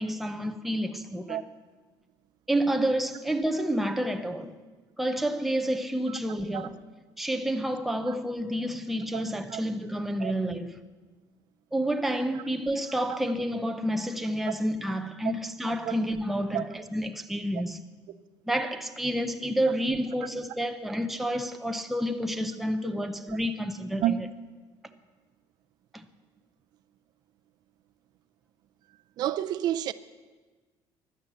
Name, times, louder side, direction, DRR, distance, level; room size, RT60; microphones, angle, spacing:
voice 1, 0.0-1.4 2.5-4.5 5.0-6.8 7.2-10.8 11.7-17.8 18.5-24.3 25.9-26.0, equal, ahead, 0.6 m, -29 dB
voice 2, 29.2-29.9, right 12 dB, 55° right, 0.5 m, -29 dB
16.5 x 11.5 x 7.2 m
cardioid pair, 170°, 8 cm